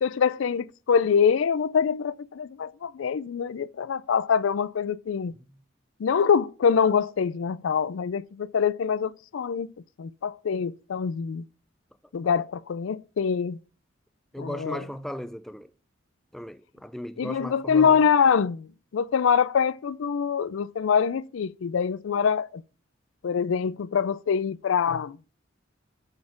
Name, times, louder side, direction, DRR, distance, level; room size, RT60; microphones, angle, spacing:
voice 1, 0.0-5.3 6.0-9.7 10.0-11.5 12.1-13.6 14.4-14.8 17.2-22.6 23.2-25.2, left 6 dB, 75° left, 0.4 m, -24 dB
voice 2, 14.3-15.7 16.3-18.0, equal, ahead, 0.3 m, -36 dB
8.7 x 4.2 x 5.8 m
head